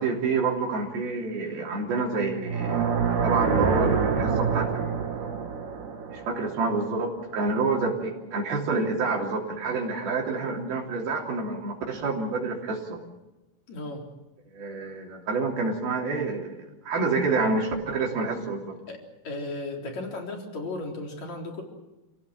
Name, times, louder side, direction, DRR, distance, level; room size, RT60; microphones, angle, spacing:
voice 1, 0.0-5.3 6.1-13.0 14.5-18.8, right 3 dB, 85° right, 0 dB, 5.2 m, -28 dB
sound 1, 2.4-7.5, right 6 dB, 60° right, 3.4 m, -27 dB
voice 2, 13.7-14.0 18.9-19.0 19.2-21.6, left 2 dB, 50° left, 1 dB, 4.9 m, -35 dB
28.5 x 17.0 x 7.5 m, 1.0 s
omnidirectional pair, 4.2 m